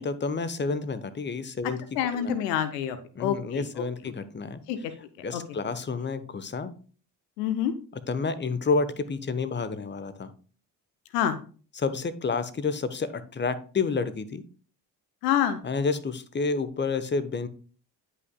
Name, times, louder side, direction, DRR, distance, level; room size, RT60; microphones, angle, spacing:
voice 1, 0.0-1.8 2.1-2.3 3.1-4.6 5.2-6.7 8.1-10.3 11.7-14.4 15.6-17.5, left 4 dB, 20° left, 13 dB, 1.0 m, -29 dB
voice 2, 2.0-3.8 4.7-4.8 5.3-5.4 7.4-7.7 11.1-11.3 15.2-15.6, left 10 dB, 75° left, 12 dB, 0.8 m, -27 dB
11.0 x 5.5 x 2.2 m, 0.40 s
figure-of-eight pair, 40°, 48 cm